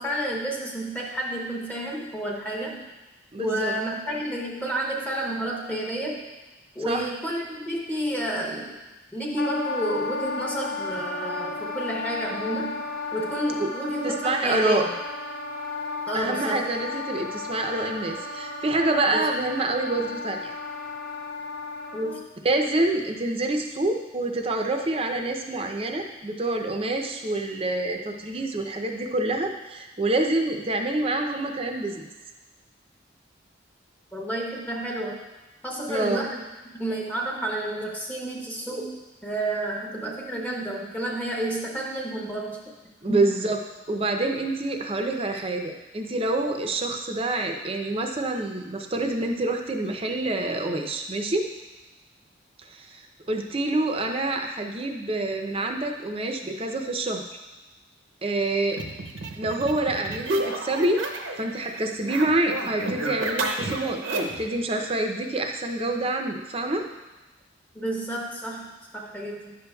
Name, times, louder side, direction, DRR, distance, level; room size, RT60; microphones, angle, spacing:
voice 1, 0.0-2.8 3.4-6.3 6.7-8.8 9.1-12.9 13.1-14.9 16.1-16.7 19.1-19.3 21.9-22.2 34.1-35.2 35.6-36.4 36.7-42.6 43.1-43.2 67.7-69.6, right 1 dB, 10° left, -1 dB, 0.7 m, -30 dB
voice 2, 3.3-3.7 6.9-7.1 13.6-13.7 14.0-14.8 16.1-20.5 22.4-32.1 35.9-36.2 43.0-43.6 43.9-51.4 52.6-57.2 58.2-58.8 59.4-61.0 61.4-66.8, right 2 dB, 30° right, 4 dB, 0.6 m, -27 dB
Wind instrument woodwind instrument, 9.4-22.3, left 3 dB, 55° left, 0.6 m, -34 dB
sound 1, 58.7-61.4 61.7-64.5, right 2 dB, 80° right, 0.8 m, -30 dB
10.5 x 6.8 x 2.3 m, 1.1 s
head